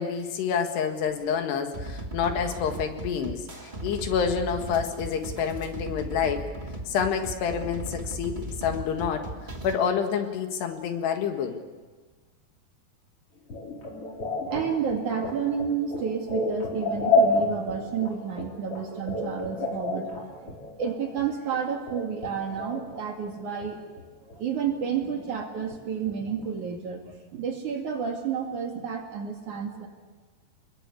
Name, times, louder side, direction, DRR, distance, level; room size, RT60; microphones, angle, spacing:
voice 1, 0.0-3.5 3.8-6.5 6.9-9.3 9.6-11.6, left 7 dB, 75° left, 5 dB, 3.7 m, -28 dB
sound 1, 1.7-9.7, right 1 dB, 15° right, 1.9 m, -37 dB
sound 2, 13.5-23.0 23.3-24.0 24.3-26.6, left 2 dB, 35° left, 5.1 m, -30 dB
voice 2, 14.5-23.8 24.4-29.9, right 7 dB, 50° right, 2 dB, 3.2 m, -31 dB
27.5 x 21.5 x 8.5 m, 1.4 s
omnidirectional pair, 5.0 m